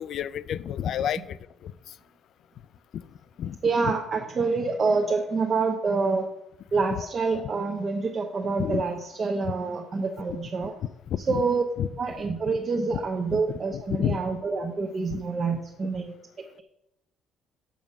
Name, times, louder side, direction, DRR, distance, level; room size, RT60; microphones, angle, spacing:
voice 1, 0.0-1.4 1.6-1.7 3.4-3.6 3.8-3.9 8.6-8.8 11.3-11.4 11.8-11.9 13.3-13.4 13.7-14.2 15.1-15.2, left 10 dB, 60° left, 17 dB, 0.4 m, -29 dB
voice 2, 3.6-6.3 6.7-10.7 11.3-11.6 12.0-16.1, right 4 dB, 35° right, 1 dB, 0.8 m, -27 dB
7.1 x 5.3 x 7.2 m, 0.84 s
cardioid pair, 135°, 0 cm